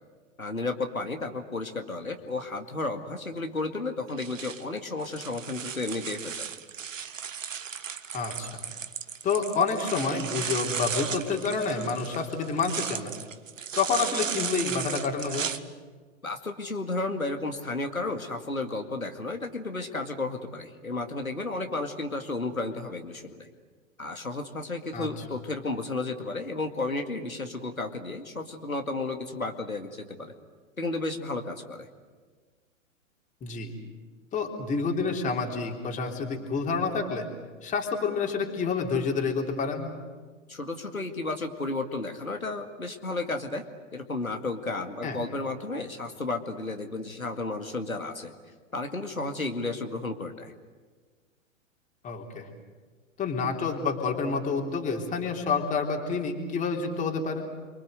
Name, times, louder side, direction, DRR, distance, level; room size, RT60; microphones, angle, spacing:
voice 1, 0.4-6.5 16.2-23.5 24.0-30.3 30.8-31.9 40.5-43.6 43.9-48.3 48.7-50.5, left 2 dB, 85° left, 4 dB, 2.3 m, -33 dB
sound 1, 4.1-15.6, right 7 dB, 70° right, 1.4 m, -35 dB
voice 2, 8.1-8.5 9.2-13.1 13.8-15.5 24.9-25.1 33.4-33.7 34.3-37.3 37.6-39.9 45.0-45.2 52.0-52.5 53.2-57.5, left 4 dB, 20° left, 2 dB, 3.6 m, -28 dB
29.5 x 24.0 x 8.0 m, 1.4 s
figure-of-eight pair, 110°, 41 cm